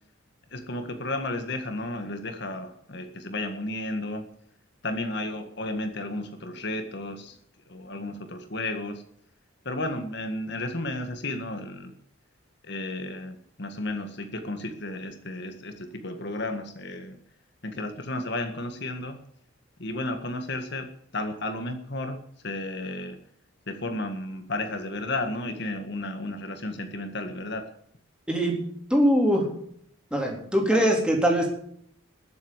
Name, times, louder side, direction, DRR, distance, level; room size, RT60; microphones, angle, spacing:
voice 1, 0.5-4.3 4.8-7.4 7.7-9.0 9.7-11.9 12.6-17.2 17.6-19.2 19.8-20.9 21.1-22.2 22.4-23.2 23.7-27.7, left 2 dB, 55° left, 6 dB, 1.8 m, -33 dB
voice 2, 28.3-28.6 28.9-29.5 30.1-31.5, equal, 5° right, 0 dB, 3.8 m, -22 dB
20.5 x 8.0 x 8.2 m, 0.67 s
head